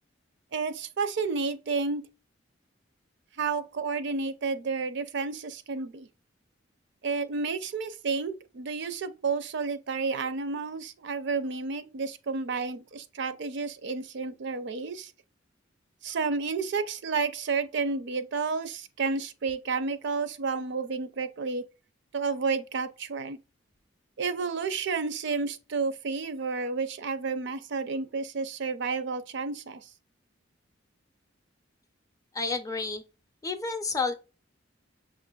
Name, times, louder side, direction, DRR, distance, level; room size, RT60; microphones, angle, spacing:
voice 1, 0.5-2.0 3.4-6.1 7.0-15.1 16.0-21.6 22.1-23.4 24.2-29.8, right 4 dB, 65° right, 0.5 m, -31 dB
voice 2, 32.3-33.0 33.4-34.1, left 4 dB, 20° left, 0.4 m, -30 dB
6.5 x 2.5 x 2.2 m
head